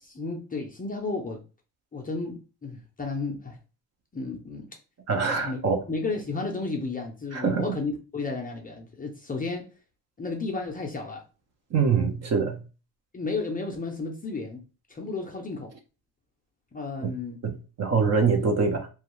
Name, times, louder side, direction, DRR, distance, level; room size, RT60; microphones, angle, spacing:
voice 1, 0.0-1.4 1.9-3.6 4.1-4.7 5.4-5.6 5.9-9.6 10.2-11.2 13.1-14.6 14.9-15.7 16.7-17.4, left 3 dB, 20° left, 1 dB, 0.5 m, -33 dB
voice 2, 5.1-5.8 7.3-7.7 11.7-12.6 17.0-17.2 17.4-18.9, right 5 dB, 40° right, 4 dB, 0.5 m, -24 dB
2.4 x 2.2 x 2.9 m, 0.33 s
cardioid pair, 110°, 42 cm